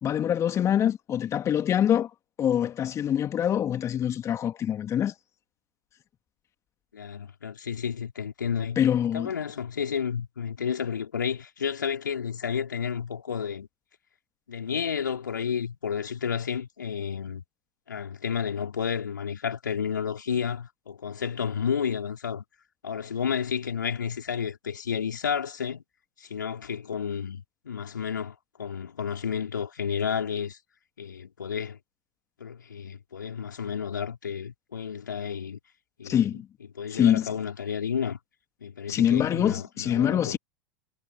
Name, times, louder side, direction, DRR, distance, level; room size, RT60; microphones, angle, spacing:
voice 1, 0.0-2.1 2.4-5.1 8.8-9.3 36.0-36.5 36.9-37.3 38.9-40.4, left 10 dB, 30° left, 2.2 m, -24 dB
voice 2, 6.9-8.8 9.1-13.7 14.5-17.4 17.9-22.4 22.8-25.8 26.2-30.6 31.0-31.8 32.4-35.6 36.0-36.2 36.7-38.2 38.6-40.4, left 7 dB, 75° left, 4.5 m, -31 dB
figure-of-eight pair, 85°, 10 cm